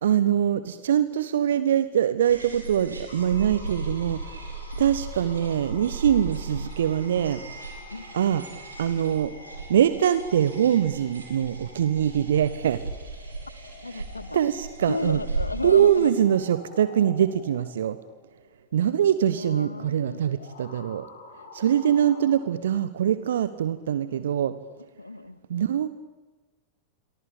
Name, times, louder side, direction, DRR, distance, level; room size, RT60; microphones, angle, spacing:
voice 1, 0.0-4.5 4.8-7.4 8.1-8.4 8.8-9.3 9.7-12.8 13.9-14.0 14.3-15.2 15.6-18.0 18.7-21.1 21.5-24.5 25.5-25.9, right 9 dB, 60° right, 14 dB, 1.3 m, -23 dB
sound 1, 2.2-16.1, right 3 dB, 80° right, 6.9 m, -37 dB
sound 2, 3.1-22.3, left 3 dB, 65° left, 6.1 m, -49 dB
voice 2, 13.8-14.4 14.8-16.1 19.3-20.2 25.0-25.4, left 2 dB, 80° left, 18 dB, 1.3 m, -34 dB
29.0 x 24.0 x 8.6 m, 1.2 s
figure-of-eight pair, 90°, 0 cm